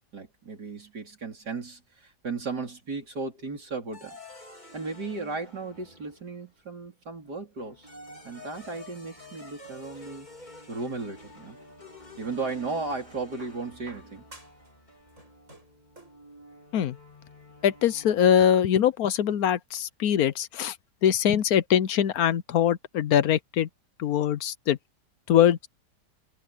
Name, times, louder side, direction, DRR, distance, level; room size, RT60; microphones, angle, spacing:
voice 1, 0.1-4.2 4.7-7.9 8.2-10.3 10.7-11.6 12.2-14.3, right 4 dB, 80° right, 4.9 m, -35 dB
sound 1, 3.9-6.5 7.6-18.7, left 1 dB, 25° left, 4.2 m, -49 dB
sound 2, 11.6-12.6 13.4-14.7 15.0-16.3 17.3-17.4, right 2 dB, 50° right, 8.2 m, -53 dB
voice 2, 17.6-20.7 21.0-23.7 24.0-24.8 25.3-25.7, left 9 dB, 70° left, 1.2 m, -22 dB
omnidirectional pair, 1.7 m